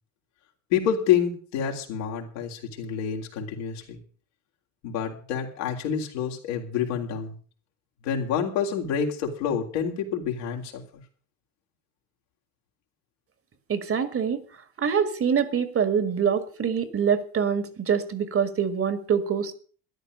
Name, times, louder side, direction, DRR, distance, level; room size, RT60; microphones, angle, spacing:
voice 1, 0.7-4.0 4.8-7.4 8.0-11.0, left 8 dB, 75° left, 1 dB, 3.4 m, -28 dB
voice 2, 13.7-14.4 14.8-19.5, right 7 dB, 35° right, 11 dB, 1.9 m, -25 dB
13.0 x 11.0 x 6.5 m, 0.43 s
hypercardioid pair, 75°, 37 cm